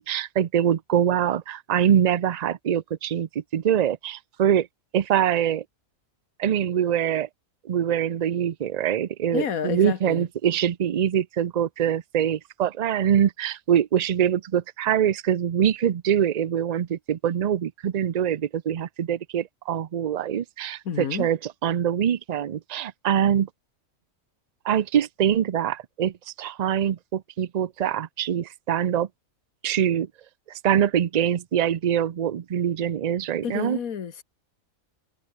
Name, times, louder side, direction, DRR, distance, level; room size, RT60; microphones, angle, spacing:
voice 1, 0.0-4.7 4.9-5.6 6.4-7.3 7.6-23.5 24.6-29.1 29.6-30.1 30.6-33.8, right 9 dB, 60° right, 0.4 m, -24 dB
voice 2, 9.3-10.3 20.9-21.3 33.4-34.2, left 7 dB, 85° left, 1.8 m, -29 dB
omnidirectional pair, 1.4 m